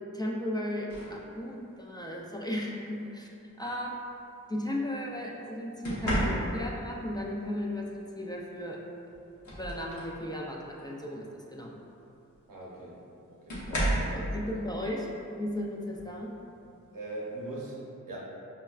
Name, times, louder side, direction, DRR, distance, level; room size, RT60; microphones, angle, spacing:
voice 1, 0.1-3.3 3.6-3.9 4.5-8.8 9.5-11.8 14.1-16.3, left 1 dB, 15° left, -3 dB, 0.4 m, -35 dB
sound 1, 0.9-1.2 2.5-2.8 5.8-6.8 8.6-8.7 9.1-10.2 10.7-11.0 12.3-12.4 13.5-14.2 15.9-16.1 16.6-16.9, right 1 dB, 65° left, 0.9 m, -32 dB
voice 2, 12.5-13.0 13.3-14.4 16.9-18.2, right 2 dB, 80° right, -5 dB, 0.8 m, -41 dB
5.4 x 2.1 x 2.3 m, 2.7 s
cardioid pair, 50°, 32 cm